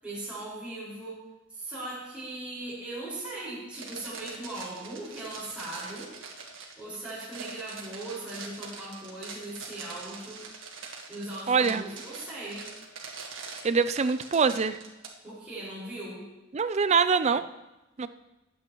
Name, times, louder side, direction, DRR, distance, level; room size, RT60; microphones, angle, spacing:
voice 1, 0.0-1.2 1.5-6.1 6.8-10.5 11.1-12.7 15.2-16.2, right 2 dB, 5° right, -10 dB, 5.3 m, -39 dB
sound 1, 3.7-15.1, right 4 dB, 75° right, 1.6 m, -43 dB
voice 2, 11.5-11.8 13.6-14.8 16.5-17.5 18.0-18.1, right 5 dB, 35° right, 12 dB, 0.4 m, -24 dB
20.5 x 8.7 x 3.1 m, 0.99 s
head